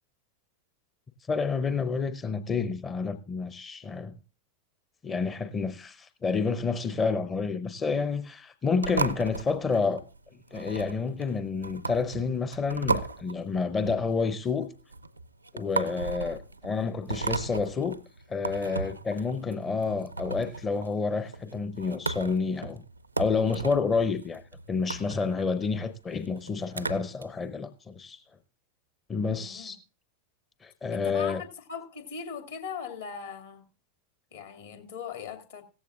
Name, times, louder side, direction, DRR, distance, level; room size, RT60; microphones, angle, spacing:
voice 1, 1.3-4.1 5.0-10.0 10.5-14.7 15.5-18.0 18.3-22.8 23.2-24.4 24.7-28.2 29.1-29.8 30.6-31.4, left 4 dB, 20° left, 0.6 m, -29 dB
sound 1, 8.8-27.2, right 3 dB, 80° right, 0.5 m, -36 dB
voice 2, 29.3-29.7 30.9-33.7 34.3-35.6, left 6 dB, 65° left, 2.3 m, -39 dB
16.5 x 14.0 x 2.5 m
figure-of-eight pair, 90°, 0 cm